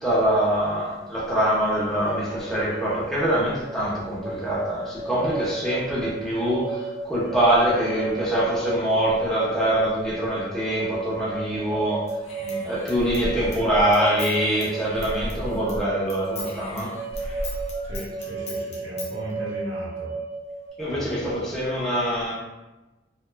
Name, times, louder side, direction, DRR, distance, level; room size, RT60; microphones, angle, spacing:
voice 1, 0.0-12.0 12.6-16.9 17.2-17.4 20.8-22.3, right 1 dB, ahead, -8 dB, 0.7 m, -24 dB
sound 1, 1.9-20.7, right 4 dB, 35° right, 0.6 m, -34 dB
Human voice / Scissors, 12.1-15.8 16.1-19.1, left 1 dB, 35° left, 0.5 m, -36 dB
voice 2, 17.8-20.1 20.9-21.0, equal, 85° right, -8 dB, 0.7 m, -36 dB
2.8 x 2.2 x 2.2 m, 1.1 s
head